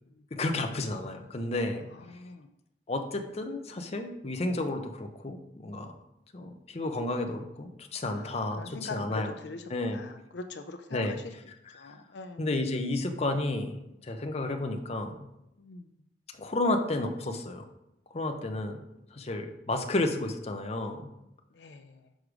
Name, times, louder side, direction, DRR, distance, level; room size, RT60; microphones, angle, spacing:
voice 1, 0.3-1.9 2.9-5.9 6.3-9.3 9.7-10.0 10.9-11.2 11.8-11.9 12.4-15.2 16.3-17.6 18.1-18.8 19.1-21.0, left 2 dB, 35° left, 5 dB, 0.7 m, -31 dB
voice 2, 1.9-2.5 8.1-8.3 8.6-11.2 11.7-12.6 15.6-15.9 21.5-22.0, left 3 dB, 75° left, 7 dB, 0.5 m, -43 dB
6.5 x 4.8 x 5.0 m, 0.85 s
head